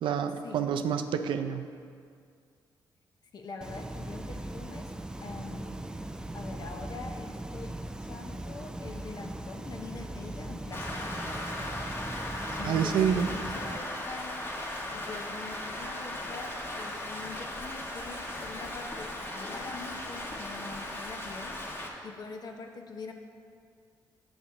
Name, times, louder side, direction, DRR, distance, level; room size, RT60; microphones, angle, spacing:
voice 1, 0.0-1.7 12.6-13.3, right 8 dB, 75° right, 8 dB, 0.4 m, -28 dB
voice 2, 3.3-4.9 5.2-5.9 6.3-7.7 8.0-11.2 12.6-23.1, left 3 dB, 55° left, 4 dB, 0.8 m, -44 dB
sound 1, 3.6-13.8, right 1 dB, 10° right, 0.3 m, -39 dB
Rain, 10.7-21.9, left 1 dB, 30° left, 1.1 m, -37 dB
7.2 x 7.0 x 3.7 m, 2.2 s
cardioid pair, 70°, 8 cm